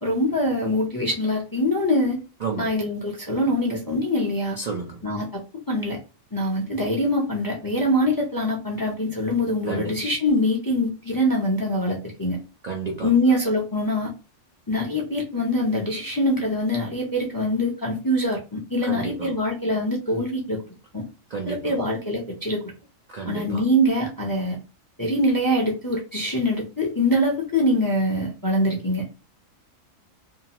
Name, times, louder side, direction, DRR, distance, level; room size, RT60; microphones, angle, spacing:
voice 1, 0.0-2.2 2.6-4.6 5.0-5.4 5.7-6.0 6.3-12.4 13.0-14.1 14.7-20.6 20.9-21.0 21.5-22.7 23.2-24.6 25.0-29.0, left 1 dB, 25° left, 0.4 m, -24 dB
voice 2, 2.4-2.8 4.6-5.0 9.7-10.0 12.6-13.1 18.8-19.3 21.3-21.7 23.1-23.6, right 4 dB, 70° right, 0.4 m, -31 dB
2.7 x 2.4 x 2.8 m
omnidirectional pair, 1.4 m